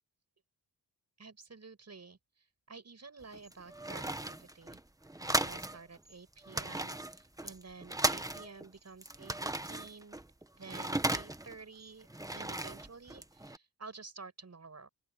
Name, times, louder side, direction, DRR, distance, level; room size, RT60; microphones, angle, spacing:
voice 1, 1.2-4.8 5.4-10.2 10.6-12.1 12.3-14.9, right 4 dB, 40° right, 7.8 m, -51 dB
sound 1, 3.2-5.8 6.1-6.2 6.4-8.7 9.0-11.6 12.0-13.6, right 1 dB, 10° right, 1.2 m, -36 dB
open air
cardioid pair, 75°, 40 cm